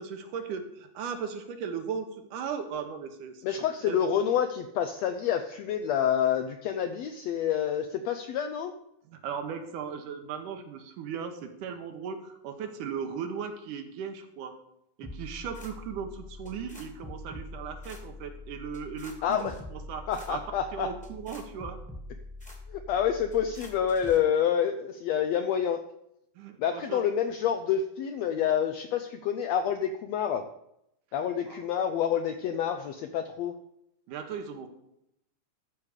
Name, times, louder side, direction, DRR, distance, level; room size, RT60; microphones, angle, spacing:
voice 1, 0.0-3.4 3.8-4.1 9.1-14.5 15.0-20.4 20.7-21.8 26.4-27.0 31.5-31.6 34.1-34.7, right 6 dB, 80° right, 6 dB, 2.6 m, -37 dB
voice 2, 3.4-8.7 19.2-19.5 20.1-20.9 22.7-25.8 26.6-30.5 31.1-33.5, left 9 dB, 80° left, 7 dB, 1.5 m, -28 dB
sound 1, 15.0-24.2, left 2 dB, 5° left, 1.2 m, -44 dB
13.0 x 4.8 x 6.5 m, 0.80 s
omnidirectional pair, 3.7 m